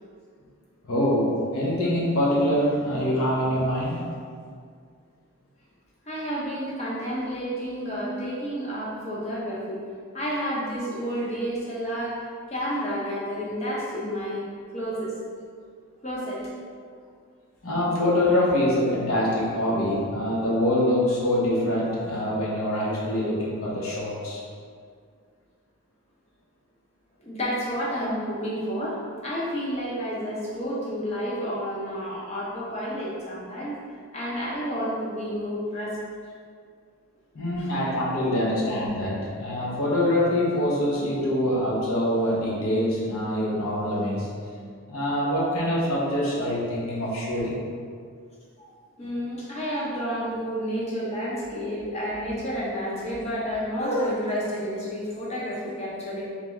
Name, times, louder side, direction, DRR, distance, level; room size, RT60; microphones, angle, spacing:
voice 1, 0.8-4.0 17.6-24.4 37.3-44.3 44.9-47.6, left 1 dB, 80° left, -5 dB, 1.0 m, -24 dB
voice 2, 6.1-9.8 10.1-14.5 14.7-15.1 16.0-16.4 27.2-33.8 34.1-36.0 48.6-56.3, equal, 30° left, -5 dB, 0.8 m, -30 dB
3.6 x 3.3 x 3.1 m, 2.1 s
head